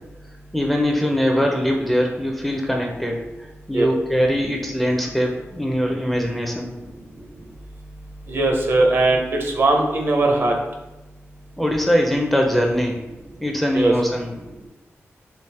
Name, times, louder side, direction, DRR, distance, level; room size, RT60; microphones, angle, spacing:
voice 1, 0.5-6.7 11.6-13.0 13.4-14.3, equal, 5° left, 1 dB, 0.4 m, -22 dB
voice 2, 8.3-10.5 13.7-13.9, right 2 dB, 50° right, 2 dB, 0.5 m, -19 dB
3.4 x 2.4 x 3.2 m, 1.0 s
wide cardioid pair, 130°, 5 cm